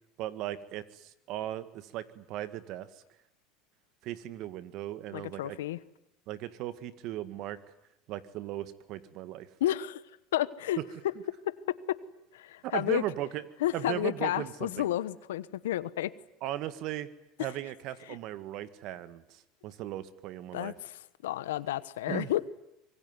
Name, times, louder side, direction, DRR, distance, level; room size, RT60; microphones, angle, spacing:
voice 1, 0.2-2.9 4.0-5.6 6.3-7.6 8.1-9.5 12.6-13.4 13.7-14.9 16.4-17.1 17.4-20.7 22.1-22.3, right 13 dB, 60° right, 13 dB, 1.8 m, -37 dB
voice 2, 5.1-5.8 9.6-10.0 10.3-10.8 11.7-12.0 12.3-13.0 13.6-16.1 20.5-22.5, left 13 dB, 90° left, 17 dB, 1.0 m, -31 dB
25.0 x 22.0 x 9.7 m, 0.86 s
supercardioid pair, 95°, 0 cm